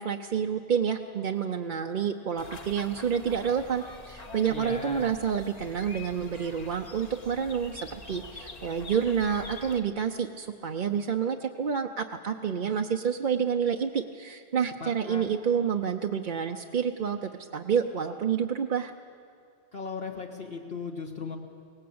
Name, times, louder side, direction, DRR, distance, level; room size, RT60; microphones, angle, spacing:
voice 1, 0.0-18.9, right 7 dB, 50° right, 3 dB, 0.8 m, -29 dB
sound 1, 2.4-9.8, left 2 dB, 35° left, 1.3 m, -45 dB
voice 2, 4.5-5.1 14.8-15.2 19.7-21.4, left 4 dB, 55° left, 0 dB, 1.6 m, -37 dB
23.0 x 18.5 x 8.6 m, 2.3 s
omnidirectional pair, 1.2 m